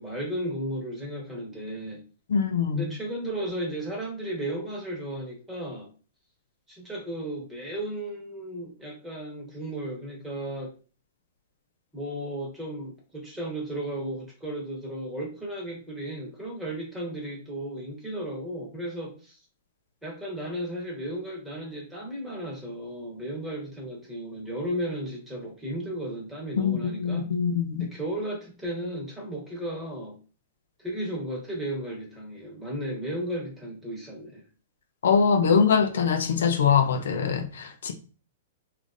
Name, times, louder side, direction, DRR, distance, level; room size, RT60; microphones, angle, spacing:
voice 1, 0.0-2.0 2.7-5.9 6.7-10.7 11.9-19.4 20.0-27.3 27.8-30.1 30.8-34.4, right 1 dB, 10° right, 1.2 m, -34 dB
voice 2, 2.3-2.9 26.6-27.9 35.0-37.9, left 6 dB, 80° left, 0.4 m, -23 dB
3.2 x 2.4 x 2.5 m
hypercardioid pair, 140°, 0 cm